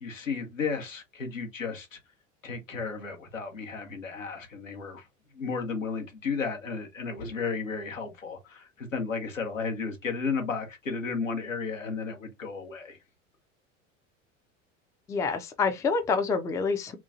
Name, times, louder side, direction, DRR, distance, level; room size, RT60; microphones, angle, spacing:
voice 1, 0.0-2.0 2.4-5.1 5.3-13.0, left 5 dB, 85° left, 0.9 m, -33 dB
voice 2, 15.1-17.0, left 5 dB, 10° left, 0.3 m, -27 dB
3.0 x 2.2 x 2.5 m
figure-of-eight pair, 75°, 38 cm